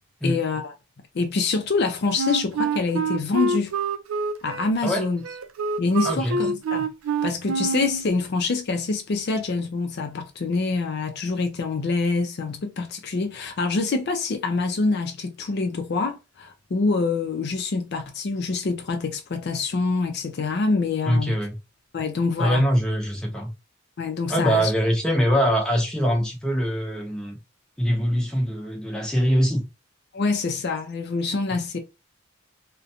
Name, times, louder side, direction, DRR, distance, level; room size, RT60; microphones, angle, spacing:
voice 1, 0.2-0.7 1.1-3.7 4.4-5.2 5.8-6.9 7.2-21.4 21.9-22.7 24.0-24.7 30.1-31.8, left 3 dB, 55° left, 0.4 m, -25 dB
Wind instrument woodwind instrument, 2.2-8.0, right 3 dB, 90° right, 0.4 m, -26 dB
voice 2, 6.0-6.4 21.1-21.6 22.4-23.5 24.3-27.4 27.8-29.6 31.5-31.6, equal, 5° left, 0.7 m, -23 dB
2.5 x 2.1 x 2.7 m
head